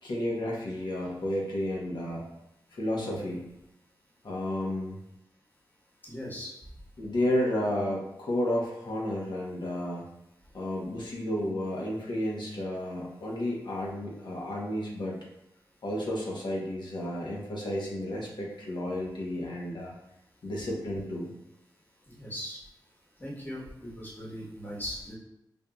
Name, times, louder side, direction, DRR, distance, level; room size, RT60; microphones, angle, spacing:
voice 1, 0.0-2.2 2.7-3.5 4.2-5.0 7.0-10.1 10.5-15.2 15.8-19.9 20.4-21.3, left 1 dB, 75° left, -3 dB, 1.0 m, -32 dB
voice 2, 2.9-3.3 6.0-6.5 22.1-22.6 23.2-25.1, equal, 25° left, -5 dB, 1.3 m, -39 dB
5.2 x 2.6 x 2.3 m, 0.85 s
wide cardioid pair, 90°, 8 cm